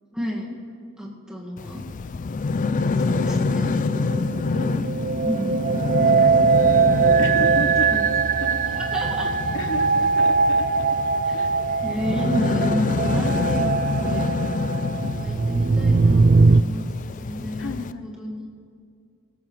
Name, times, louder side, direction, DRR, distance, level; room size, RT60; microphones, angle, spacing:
voice 1, 0.1-0.5 1.0-1.9 3.0-3.8 5.2-5.8 7.9-8.1 8.8-9.3 11.3-11.4 11.8-14.4 15.0-17.7 18.0-18.5, equal, 5° right, -4 dB, 2.0 m, -31 dB
sound 1, 1.6-17.9, left 4 dB, 35° left, 0.4 m, -27 dB
sound 2, 2.8-16.6, right 4 dB, 40° right, 0.4 m, -21 dB
voice 2, 6.2-6.9 7.2-8.0 8.4-8.8 9.2-11.0 11.3-11.5 17.6-18.2, left 2 dB, 60° left, 7 dB, 1.1 m, -34 dB
24.5 x 13.5 x 3.3 m, 2.3 s
head